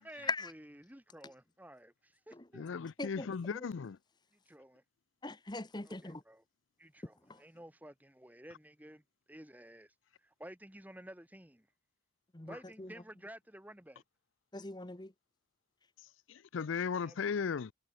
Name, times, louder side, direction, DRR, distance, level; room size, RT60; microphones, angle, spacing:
voice 1, 0.0-2.7 4.5-4.8 5.8-6.4 6.8-9.0 9.3-9.9 10.2-11.7 12.4-14.0 17.0-17.2, right 1 dB, 10° right, 2.3 m, -52 dB
voice 2, 2.5-4.0 16.3-17.7, left 6 dB, 75° left, 0.5 m, -36 dB
voice 3, 5.2-6.2 12.3-12.5 12.8-12.9 14.5-15.1, left 3 dB, 20° left, 1.0 m, -39 dB
head